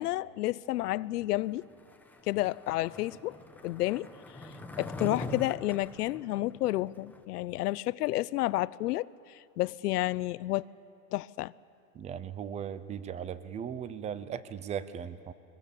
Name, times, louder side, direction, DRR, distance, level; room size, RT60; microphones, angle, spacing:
voice 1, 0.0-1.6 2.3-3.4 3.6-4.1 4.8-9.1 9.6-10.6 11.1-11.5, left 17 dB, 75° left, 0.6 m, -30 dB
Skateboard, 1.8-7.2, left 2 dB, 5° left, 1.1 m, -42 dB
voice 2, 11.9-15.3, right 8 dB, 15° right, 0.5 m, -38 dB
22.5 x 21.5 x 7.2 m
supercardioid pair, 135°, 47 cm